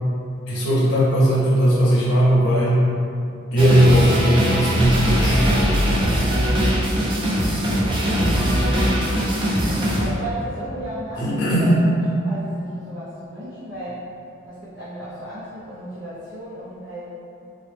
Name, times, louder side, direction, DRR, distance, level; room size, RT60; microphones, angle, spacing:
voice 1, 0.5-2.8 3.5-5.9 11.2-11.8, right 1 dB, 60° left, -7 dB, 0.6 m, -18 dB
sound 1, 3.6-10.1, equal, 25° right, 0.4 m, -20 dB
voice 2, 7.1-7.5 9.9-14.1 14.5-17.0, right 1 dB, 75° right, -12 dB, 0.7 m, -34 dB
3.7 x 2.1 x 3.3 m, 2.7 s
head